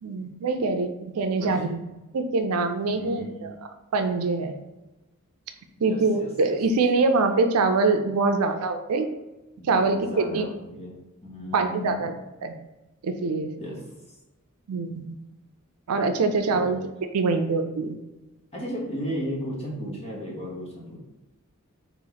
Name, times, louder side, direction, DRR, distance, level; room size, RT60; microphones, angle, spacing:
voice 1, 0.0-1.8 2.1-3.5 3.9-4.5 5.8-9.1 9.7-10.5 11.5-12.1 12.4-12.5 13.0-13.5 14.7-15.2 15.9-16.8 17.1-18.0, right 3 dB, 90° right, 7 dB, 0.4 m, -24 dB
voice 2, 1.4-1.8 2.8-3.5 5.8-6.6 9.6-10.9 11.3-12.1 13.6-13.8 16.5-16.8 18.5-21.0, equal, 30° left, -3 dB, 0.9 m, -35 dB
3.0 x 2.9 x 3.9 m, 1.0 s
head